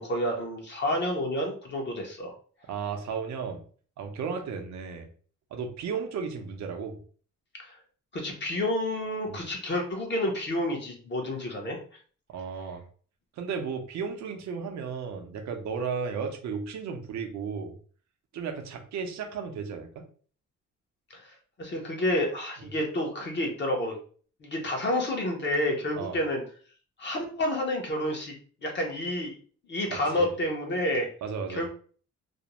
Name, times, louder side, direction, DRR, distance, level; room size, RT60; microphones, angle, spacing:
voice 1, 0.0-2.3 7.6-7.8 8.1-11.8 21.1-24.0 24.4-26.4 27.0-28.3 28.6-29.4 29.7-31.1 31.5-31.7, left 1 dB, 40° left, 1 dB, 0.7 m, -29 dB
voice 2, 2.7-3.6 4.0-5.1 5.5-7.0 9.3-9.4 12.3-12.8 13.4-17.8 18.3-20.1 26.0-26.2 29.9-30.3 31.2-31.7, right 6 dB, 70° right, 5 dB, 0.6 m, -34 dB
2.5 x 2.0 x 2.9 m, 0.43 s
cardioid pair, 130°, 29 cm